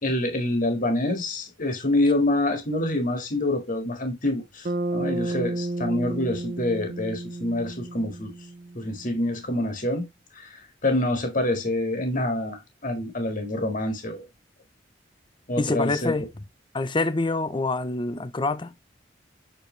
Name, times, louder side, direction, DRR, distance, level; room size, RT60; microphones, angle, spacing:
voice 1, 0.0-8.3 8.7-10.1 10.3-14.2 15.5-16.1, left 1 dB, 45° left, 1.8 m, -26 dB
Bass guitar, 4.6-9.0, right 2 dB, 45° right, 0.7 m, -31 dB
voice 2, 15.6-16.3 16.7-18.7, left 3 dB, 25° left, 0.6 m, -26 dB
7.3 x 4.3 x 3.2 m
head